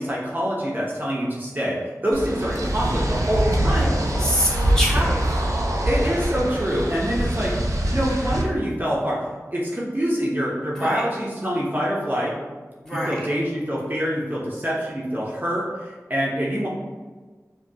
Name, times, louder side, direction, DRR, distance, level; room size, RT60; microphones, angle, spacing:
voice 1, 0.0-1.8 2.0-4.0 4.9-5.1 5.8-7.5 7.9-9.2 9.5-12.4 13.1-16.7, equal, 30° right, -5 dB, 0.7 m, -25 dB
sound 1, 2.1-8.4, right 1 dB, 70° right, 0.6 m, -23 dB
voice 2, 4.2-5.4 10.7-11.1 12.8-13.3, equal, 10° left, -6 dB, 1.2 m, -26 dB
5.0 x 2.3 x 2.7 m, 1.4 s
wide cardioid pair, 45°, 6 cm